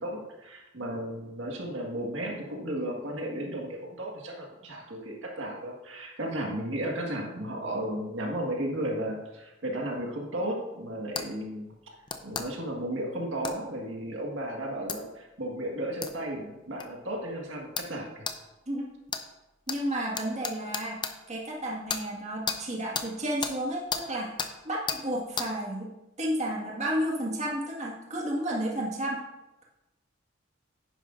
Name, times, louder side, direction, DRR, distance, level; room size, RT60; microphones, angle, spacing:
voice 1, 0.0-11.7 12.2-18.3, right 1 dB, 70° right, -1 dB, 1.8 m, -34 dB
sound 1, 11.2-11.3 12.1-12.5 13.4-13.6 14.9-15.0 16.0-16.1 16.8-16.9 17.8-17.9 18.3-18.4 19.1-19.2 19.7-19.8 20.2-21.1 21.9-22.0 22.5-22.6 22.9-23.1 23.4-23.6 23.9-24.0 24.4-24.5 24.9-25.0 25.4-25.5, left 5 dB, 25° left, 0.6 m, -32 dB
voice 2, 19.7-21.0 21.3-24.3 24.6-25.9 26.2-29.2, right 1 dB, 35° right, -3 dB, 1.8 m, -32 dB
10.5 x 9.8 x 2.6 m, 0.99 s
head